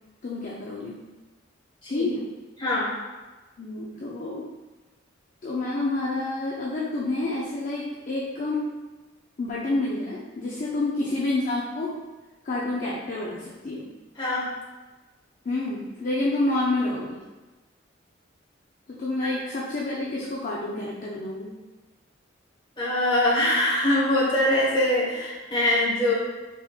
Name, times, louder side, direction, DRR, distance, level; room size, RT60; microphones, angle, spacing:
voice 1, 0.2-1.0 1.9-2.3 3.6-4.5 5.4-8.7 9.4-12.0 12.4-13.9 15.5-17.2 18.9-21.5, left 2 dB, 45° left, -5 dB, 0.5 m, -28 dB
voice 2, 2.6-2.9 10.7-10.8 14.2-14.5 22.8-26.1, left 1 dB, 25° left, -8 dB, 1.3 m, -23 dB
4.2 x 3.5 x 2.4 m, 1.2 s
head